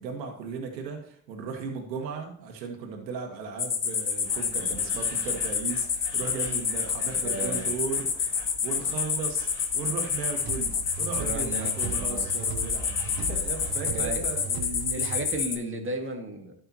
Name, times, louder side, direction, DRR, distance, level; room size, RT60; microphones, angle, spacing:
voice 1, 0.0-9.5 9.7-14.5, right 5 dB, 90° right, 3 dB, 1.6 m, -36 dB
sound 1, 3.6-15.6, left 6 dB, 30° left, 1.2 m, -29 dB
sound 2, 4.2-13.7, left 5 dB, 75° left, 2.5 m, -45 dB
voice 2, 7.1-7.6 11.2-12.3 13.8-16.6, right 2 dB, 25° right, 3 dB, 2.1 m, -35 dB
sound 3, 10.4-15.5, right 6 dB, 45° right, 1.0 m, -38 dB
12.0 x 5.5 x 3.0 m, 0.65 s
hypercardioid pair, 70°, 49 cm